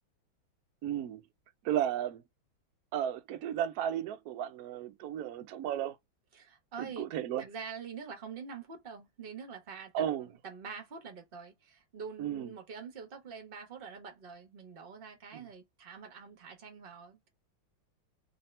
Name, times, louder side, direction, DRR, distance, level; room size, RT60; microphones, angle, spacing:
voice 1, 0.8-1.2 1.6-2.2 2.9-6.0 6.8-7.4 9.9-10.3 12.2-12.5 15.3-15.5, right 10 dB, 75° right, 0.8 m, -34 dB
voice 2, 6.3-7.1 7.4-17.3, right 6 dB, 35° right, 1.0 m, -45 dB
3.3 x 2.8 x 3.2 m
omnidirectional pair, 2.2 m